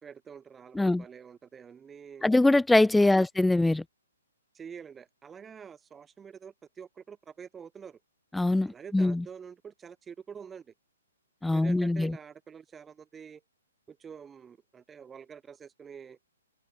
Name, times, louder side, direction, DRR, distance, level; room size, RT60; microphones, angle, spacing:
voice 1, 0.0-2.3 3.0-3.3 4.5-8.0 8.7-10.7 11.5-13.4 13.9-16.2, right 7 dB, 10° right, 2.7 m, -47 dB
voice 2, 2.2-3.8 8.3-9.2 11.4-12.2, left 2 dB, 5° left, 0.3 m, -23 dB
open air
figure-of-eight pair, 125°, 0 cm